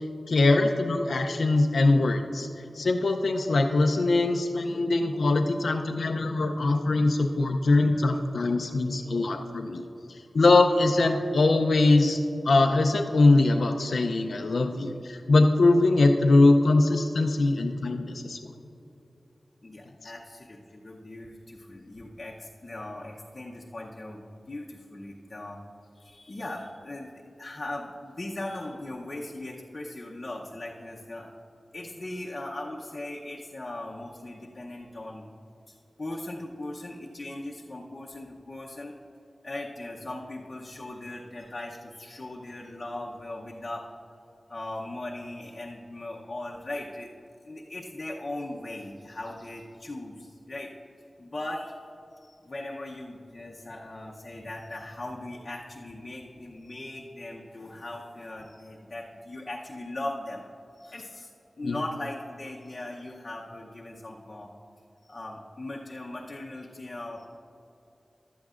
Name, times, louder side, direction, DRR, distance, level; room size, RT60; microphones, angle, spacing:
voice 1, 0.3-2.5 2.8-9.8 10.3-12.2 12.5-18.4 20.0-20.1 61.6-61.8, left 2 dB, 90° left, 3 dB, 0.5 m, -22 dB
voice 2, 19.6-25.6 25.9-31.3 31.7-35.2 35.7-38.9 39.4-43.9 44.5-47.1 47.4-50.7 51.2-51.8 52.2-60.4 60.7-61.3 61.6-64.5 65.0-67.3, left 1 dB, 40° left, -3 dB, 0.8 m, -39 dB
15.5 x 11.5 x 2.5 m, 2.9 s
wide cardioid pair, 105°, 0 cm